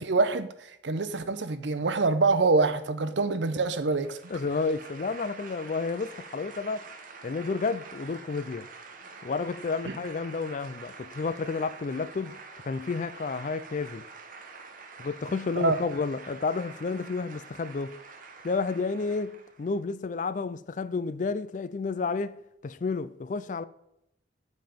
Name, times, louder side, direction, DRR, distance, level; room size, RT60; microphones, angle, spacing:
voice 1, 0.0-4.2 9.9-10.0 15.6-15.8, right 3 dB, 70° right, 0.7 m, -25 dB
sound 1, 3.7-19.7, right 4 dB, 45° right, 0.9 m, -47 dB
voice 2, 4.3-6.9 7.2-8.7 9.2-12.4 12.7-14.1 15.0-18.0 18.4-22.4 22.6-23.6, left 4 dB, 40° left, 0.4 m, -31 dB
7.9 x 5.3 x 5.1 m
head